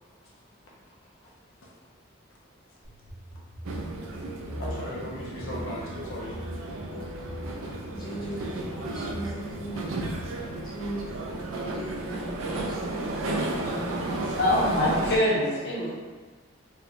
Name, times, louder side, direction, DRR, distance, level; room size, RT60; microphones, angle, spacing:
sound 1, 2.8-10.2, equal, 55° right, 0.8 m, -42 dB
sound 2, 3.6-15.2, right 2 dB, 80° right, 0.4 m, -33 dB
voice 1, 4.6-6.4, left 1 dB, 85° left, -4 dB, 0.6 m, -38 dB
voice 2, 6.9-7.2 7.9-9.9 10.6-12.9 13.5-14.4, right 1 dB, 20° left, -7 dB, 0.4 m, -39 dB
voice 3, 14.4-15.9, left 1 dB, 55° left, -6 dB, 0.7 m, -24 dB
3.0 x 2.1 x 2.5 m, 1.3 s
head